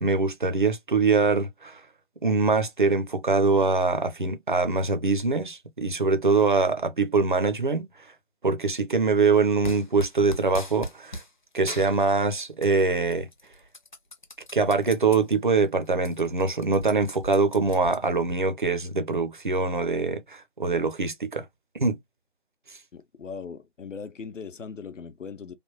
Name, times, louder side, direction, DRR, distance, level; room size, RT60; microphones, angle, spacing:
voice 1, 0.0-1.8 2.2-7.9 8.4-11.2 11.5-13.3 14.5-21.4 21.7-22.0 22.7-22.8, right 4 dB, 45° right, 0.4 m, -23 dB
sound 1, 9.6-11.3 11.7-12.8 13.1-15.2 15.6-15.7 15.9-18.4, equal, 40° left, 0.5 m, -39 dB
voice 2, 22.9-25.5, left 5 dB, 80° left, 0.7 m, -39 dB
3.3 x 2.0 x 2.8 m
figure-of-eight pair, 155°, 37 cm